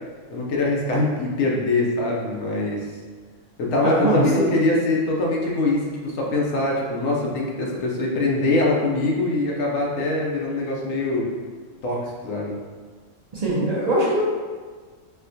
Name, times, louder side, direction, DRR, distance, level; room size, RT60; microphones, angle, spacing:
voice 1, 0.3-2.8 3.6-11.3 11.8-12.6, left 2 dB, 85° left, -2 dB, 1.0 m, -23 dB
voice 2, 3.8-4.5 13.3-14.2, right 1 dB, 50° right, -6 dB, 0.5 m, -22 dB
4.2 x 2.1 x 2.6 m, 1.5 s
omnidirectional pair, 1.3 m